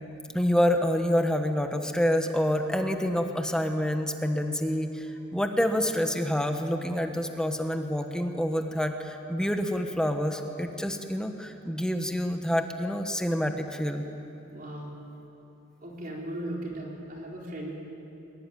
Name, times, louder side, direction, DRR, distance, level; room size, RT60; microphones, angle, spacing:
voice 1, 0.3-14.0, equal, 5° left, 5 dB, 1.2 m, -27 dB
voice 2, 14.5-15.0 15.8-17.7, right 1 dB, 45° right, -2 dB, 4.1 m, -37 dB
22.0 x 21.5 x 9.2 m, 2.9 s
head